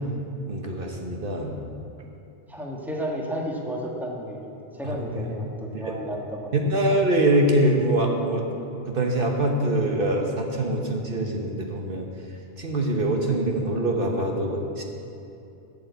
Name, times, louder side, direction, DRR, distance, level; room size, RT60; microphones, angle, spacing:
voice 1, 0.5-1.5 4.8-5.2 5.9-6.0 6.5-8.5 8.8-12.0 12.6-14.8, right 1 dB, 60° right, 1 dB, 1.3 m, -24 dB
voice 2, 2.5-4.5 4.8-5.5 5.8-6.6, equal, ahead, -1 dB, 1.4 m, -32 dB
12.0 x 6.9 x 8.2 m, 2.7 s
omnidirectional pair, 1.0 m